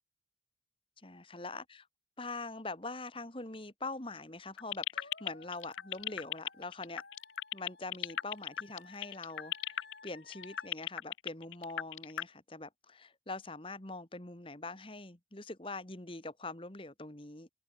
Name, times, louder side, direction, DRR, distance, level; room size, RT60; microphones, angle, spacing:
voice 1, 1.0-1.9 2.2-7.0 7.5-17.5, left 3 dB, 30° left, 1.9 m, -43 dB
sound 1, 4.6-12.2, left 12 dB, 90° left, 0.4 m, -35 dB
sound 2, 4.9-10.7, left 3 dB, 60° left, 5.9 m, -57 dB
open air
head